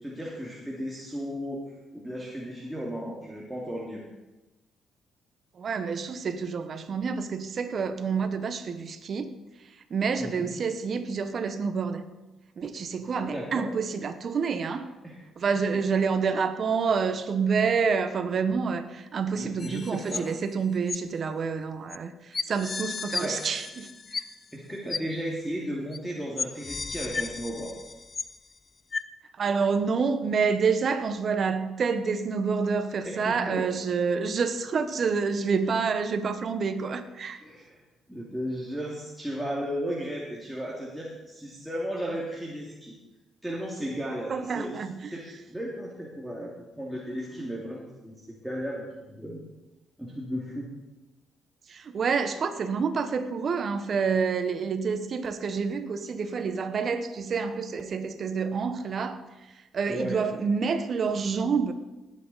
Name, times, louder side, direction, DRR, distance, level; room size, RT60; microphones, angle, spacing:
voice 1, 0.0-1.6 1.9-4.1 10.2-10.5 13.2-13.7 15.0-15.2 15.7-15.8 19.4-20.3 23.2-23.4 24.5-27.7 33.1-33.6 37.4-37.8 38.1-42.9 43.4-44.8 45.1-49.4 50.0-50.7 59.9-60.2, equal, ahead, 2.4 m, -35 dB
voice 2, 5.5-12.0 12.6-14.9 15.4-24.3 29.4-37.4 44.3-45.1 51.7-61.7, right 5 dB, 50° right, 1.1 m, -28 dB
sound 1, 19.6-20.5 20.9-21.0 21.9-22.0 22.3-24.6 24.9-25.0 25.9-26.0 26.4-28.5 28.9-29.0, left 4 dB, 35° left, 0.5 m, -34 dB
19.0 x 8.6 x 4.1 m
cardioid pair, 90°, 0 cm